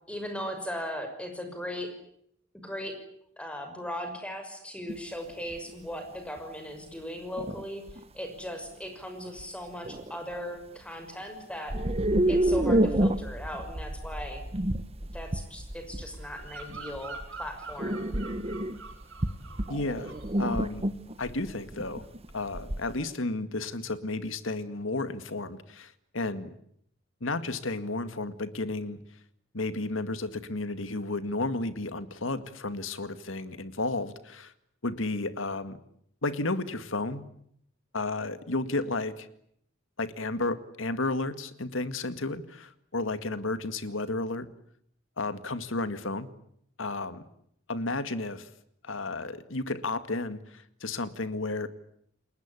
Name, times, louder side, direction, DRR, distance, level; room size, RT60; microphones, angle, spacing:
voice 1, 0.1-1.9 2.6-3.0 3.4-11.8 12.3-14.4 15.1-18.0, equal, 5° left, 6 dB, 6.0 m, -38 dB
sound 1, 4.9-5.0 5.5-5.7 6.4-6.5 7.4-8.0 9.4-9.5 9.8-10.2 11.7-22.9, right 1 dB, 30° right, 1.3 m, -29 dB
Bird vocalization bird call bird song, 16.2-19.7 20.0-20.4, right 3 dB, 85° right, 5.5 m, -45 dB
voice 2, 19.7-20.1 20.4-20.9 21.2-22.1 22.3-26.5 27.2-29.0 29.5-34.5 34.8-35.8 36.2-37.2 37.9-39.3 40.0-44.5 45.2-46.3 46.8-47.3 47.7-48.5 48.8-51.7, left 2 dB, 75° left, 11 dB, 2.1 m, -32 dB
29.5 x 21.0 x 8.4 m, 0.70 s
head